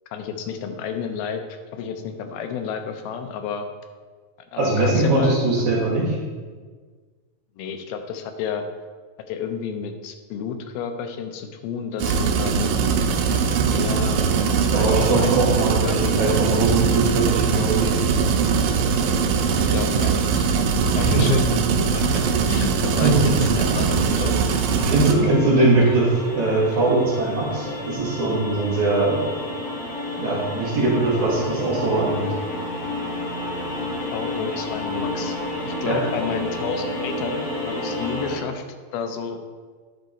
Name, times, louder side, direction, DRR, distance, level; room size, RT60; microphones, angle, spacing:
voice 1, 0.1-1.4 1.7-3.7 4.5-5.4 7.6-8.7 9.3-12.7 13.7-14.2 14.5-15.3 15.6-16.0 19.5-20.5 21.0-21.5 21.9-22.2 22.5-24.7 25.1-25.7 34.1-35.4 35.6-38.6 38.9-39.4, left 6 dB, 90° left, 6 dB, 2.6 m, -31 dB
voice 2, 4.6-6.2 14.6-17.9 21.0-21.3 23.0-23.2 24.9-26.0 26.3-29.2 30.2-32.3 35.9-36.0, right 2 dB, 55° right, -4 dB, 3.0 m, -21 dB
sound 1, 12.0-25.1, right 5 dB, 80° right, 2.2 m, -21 dB
sound 2, 20.9-38.4, left 1 dB, 40° left, 2.3 m, -31 dB
10.5 x 5.3 x 4.1 m, 1.5 s
omnidirectional pair, 4.3 m